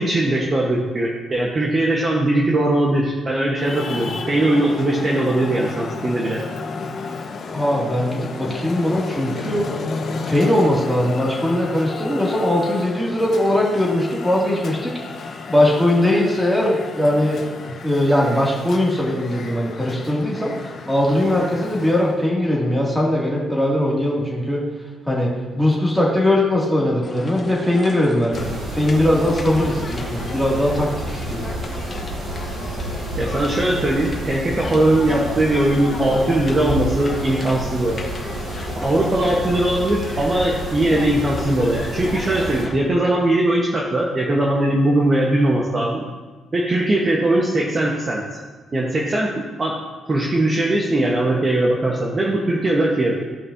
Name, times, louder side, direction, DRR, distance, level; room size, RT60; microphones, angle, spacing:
voice 1, 0.0-6.4 33.1-38.0 38.8-46.0 46.5-48.2 48.7-49.8 50.1-53.2, right 1 dB, 30° right, -2 dB, 1.2 m, -20 dB
Traffic noise roadway noise, 3.6-22.2, left 4 dB, 60° left, 1.3 m, -32 dB
voice 2, 7.5-9.6 10.2-17.4 17.8-24.6 25.1-31.4, left 1 dB, 5° right, -4 dB, 2.4 m, -20 dB
sound 1, 27.0-42.8, left 3 dB, 35° left, 1.4 m, -35 dB
Mechanisms, 28.3-42.6, right 1 dB, 65° right, 2.6 m, -30 dB
15.0 x 5.4 x 2.8 m, 1.3 s
cardioid pair, 90°, 0 cm